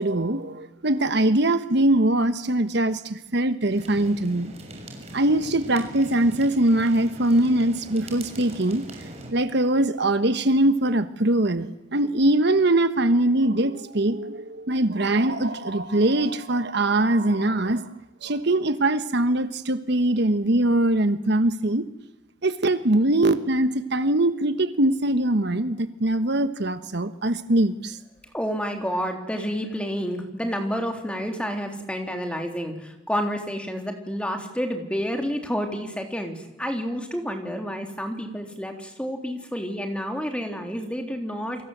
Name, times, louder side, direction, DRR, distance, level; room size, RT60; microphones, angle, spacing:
voice 1, 0.0-4.5 5.1-8.8 9.3-17.8 18.2-21.9 22.4-28.0, right 1 dB, 55° right, 11 dB, 1.2 m, -22 dB
sound 1, 3.7-9.3, right 1 dB, 30° right, 6.3 m, -41 dB
voice 2, 28.3-41.6, equal, 5° left, 4 dB, 3.5 m, -29 dB
29.5 x 24.0 x 8.0 m, 0.99 s
head